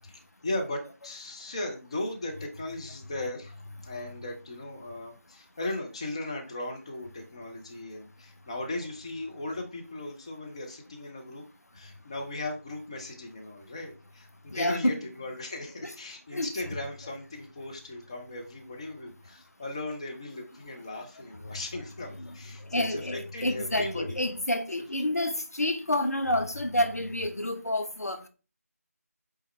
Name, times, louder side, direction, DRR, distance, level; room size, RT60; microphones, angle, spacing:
voice 1, 0.0-3.5 3.8-11.4 11.7-24.2, left 2 dB, 20° left, 0.8 m, -37 dB
voice 2, 14.5-14.9 15.8-15.9 16.3-16.5 22.2-22.3 22.7-28.3, left 1 dB, 80° left, 1.2 m, -29 dB
8.2 x 3.5 x 3.3 m
figure-of-eight pair, 170°, 8 cm